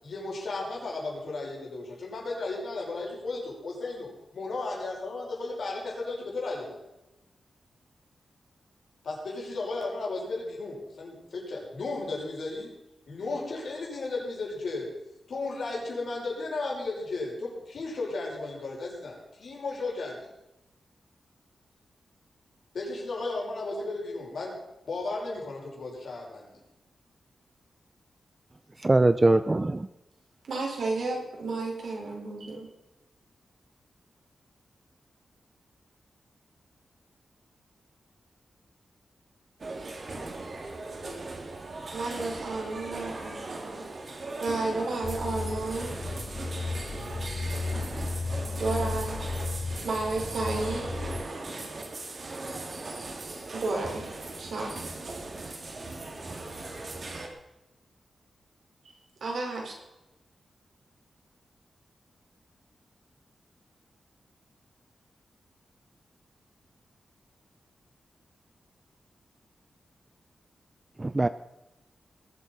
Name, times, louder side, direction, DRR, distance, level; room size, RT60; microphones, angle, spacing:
voice 1, 0.0-6.8 9.0-12.7 13.1-14.9 15.3-20.3 22.7-24.5 24.9-26.5, left 3 dB, 70° left, -2 dB, 5.9 m, -34 dB
voice 2, 28.8-29.9 71.0-71.3, right 2 dB, 25° right, 12 dB, 0.5 m, -22 dB
voice 3, 30.5-32.7 41.9-43.9 44.4-45.9 46.4-46.5 48.5-49.2 49.8-50.8 53.5-54.1 54.4-54.7 59.2-59.8, right 3 dB, 75° right, -1 dB, 4.8 m, -32 dB
sound 1, 39.6-57.3, right 2 dB, 50° right, 2.6 m, -39 dB
sound 2, 45.0-51.2, left 3 dB, 20° left, 3.2 m, -34 dB
20.5 x 8.5 x 5.5 m, 0.95 s
wide cardioid pair, 95°, 0 cm